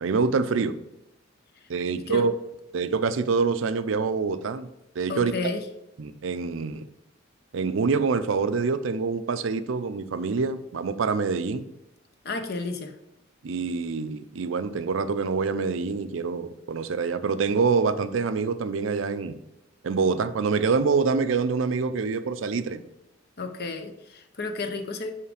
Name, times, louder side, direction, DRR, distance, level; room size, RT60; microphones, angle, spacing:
voice 1, 0.0-0.7 1.7-2.3 2.7-4.7 5.0-5.3 6.0-6.9 7.5-11.6 13.4-19.3 19.8-22.8, right 4 dB, 75° right, 12 dB, 0.5 m, -26 dB
voice 2, 5.1-5.7 12.2-13.0 23.4-25.1, left 3 dB, 55° left, 7 dB, 0.8 m, -32 dB
5.6 x 4.9 x 4.9 m, 0.88 s
head